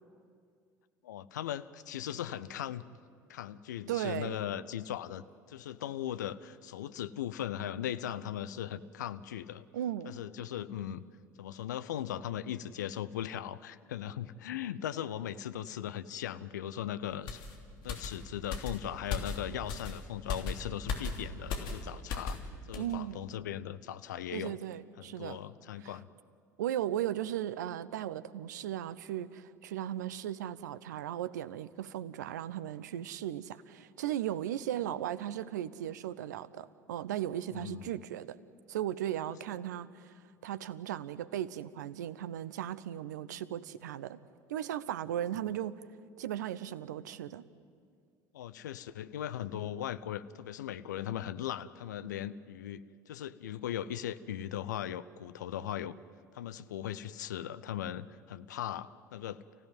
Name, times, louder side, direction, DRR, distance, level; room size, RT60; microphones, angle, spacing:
voice 1, 1.0-2.8 3.3-5.2 5.5-9.7 10.0-11.0 11.4-17.4 17.8-22.4 22.7-24.6 25.0-26.1 37.5-38.0 39.3-39.4 48.3-55.9 56.3-59.4, left 11 dB, 75° left, 14 dB, 0.7 m, -38 dB
voice 2, 3.9-4.4 9.7-10.1 22.8-23.2 24.3-25.4 25.8-25.9 26.6-38.4 38.7-40.1 40.4-44.2 44.5-45.8 46.2-47.4, right 11 dB, 70° right, 17 dB, 0.8 m, -36 dB
sound 1, 17.3-22.5 22.7-22.9, left 5 dB, 55° left, 3.2 m, -38 dB
30.0 x 16.0 x 9.3 m, 2.2 s
figure-of-eight pair, 65°, 10 cm